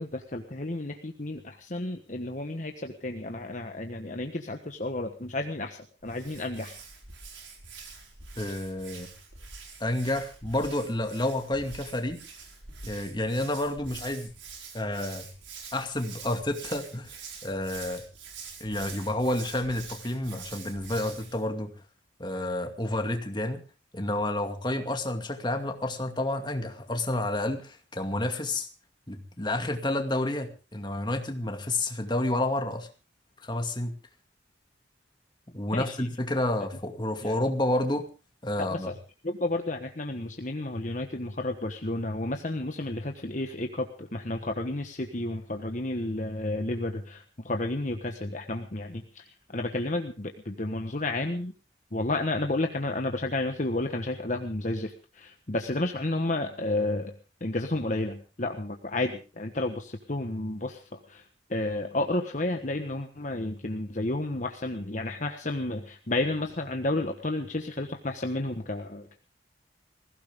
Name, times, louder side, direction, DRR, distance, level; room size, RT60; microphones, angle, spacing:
voice 1, 0.0-6.8 35.7-36.1 37.2-37.3 38.6-38.9 39.2-49.2 49.5-51.5 51.9-57.1 57.4-60.8 61.1-61.2 61.5-69.2, left 2 dB, 40° left, 5 dB, 1.3 m, -31 dB
Hands, 6.0-21.4, right 5 dB, 80° right, 5.2 m, -45 dB
voice 2, 8.4-9.1 9.8-12.2 12.8-14.3 14.7-15.3 15.7-18.0 18.6-21.7 22.2-23.6 23.9-28.7 29.1-32.9 33.4-33.9 35.5-38.1 38.4-38.9, left 1 dB, 25° left, 5 dB, 2.3 m, -30 dB
20.5 x 16.5 x 3.7 m, 0.35 s
head